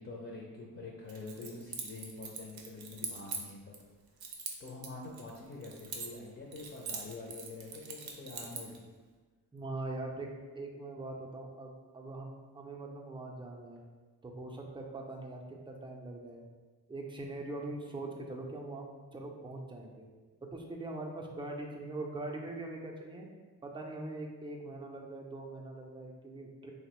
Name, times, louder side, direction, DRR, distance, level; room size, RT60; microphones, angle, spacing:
voice 1, 0.0-3.8 4.2-4.3 4.6-8.8, left 3 dB, 35° left, -2 dB, 0.5 m, -46 dB
Keys jangling, 1.1-3.8 4.2-6.3 6.5-8.8, right 5 dB, 85° right, 0.5 m, -42 dB
voice 2, 9.5-13.8 14.2-16.4 16.9-20.1 20.5-23.3 23.6-26.7, right 2 dB, 15° right, 1 dB, 0.4 m, -42 dB
2.9 x 2.1 x 2.9 m, 1.3 s
cardioid pair, 55°, 37 cm